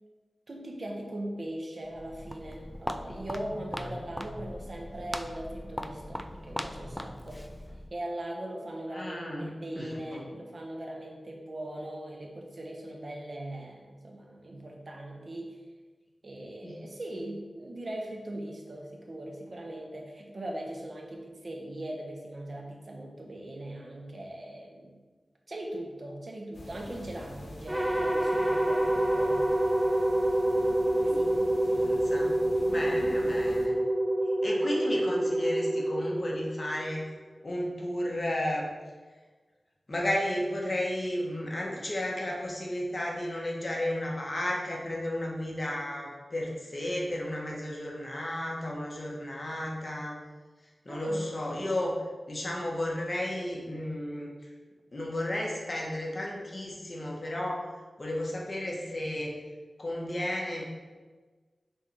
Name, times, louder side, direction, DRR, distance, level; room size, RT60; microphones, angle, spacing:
voice 1, 0.5-7.5 7.9-15.6 16.2-25.0 25.5-29.5 31.0-31.4 31.6-31.8 32.8-33.0 50.9-51.4, right 1 dB, 55° right, 0 dB, 1.3 m, -40 dB
Walk footsteps, 1.9-8.0, left 1 dB, 10° left, 0.4 m, -40 dB
voice 2, 8.9-9.5 9.7-10.2 16.6-16.7 31.0-31.2 31.6-32.4 32.6-33.8 34.4-37.1 37.4-38.7 39.9-50.2 50.8-52.0 52.3-54.3 54.9-57.7 58.0-59.3 59.8-60.7, left 1 dB, 45° left, -3 dB, 1.6 m, -33 dB
sound 1, 26.5-33.7, left 1 dB, 80° left, 1.1 m, -45 dB
sound 2, 27.7-37.0, right 1 dB, 20° right, 1.2 m, -27 dB
6.4 x 4.0 x 5.0 m, 1.4 s
wide cardioid pair, 65°, 0 cm